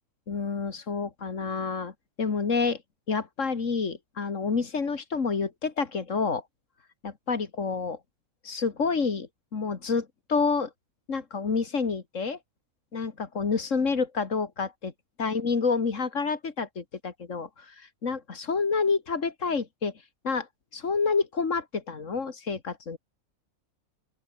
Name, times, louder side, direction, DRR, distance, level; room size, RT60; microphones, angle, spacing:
voice 1, 0.3-2.8 3.1-6.4 7.0-8.0 8.4-10.7 11.1-12.4 12.9-14.9 15.2-19.9 20.2-20.5 20.7-23.0, left 5 dB, 60° left, 2.3 m, -28 dB
open air
omnidirectional pair, 1.5 m